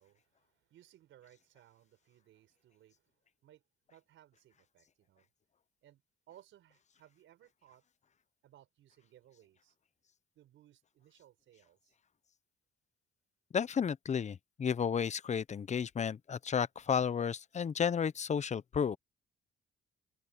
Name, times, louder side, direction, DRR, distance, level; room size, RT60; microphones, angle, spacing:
voice 1, 0.0-3.1 3.4-3.6 3.9-5.3 5.8-6.0 6.3-7.8 8.4-9.8 10.4-12.0, right 12 dB, 80° right, 5.7 m, -62 dB
voice 2, 13.5-19.0, left 7 dB, 35° left, 0.7 m, -32 dB
cardioid pair, 90°, 20 cm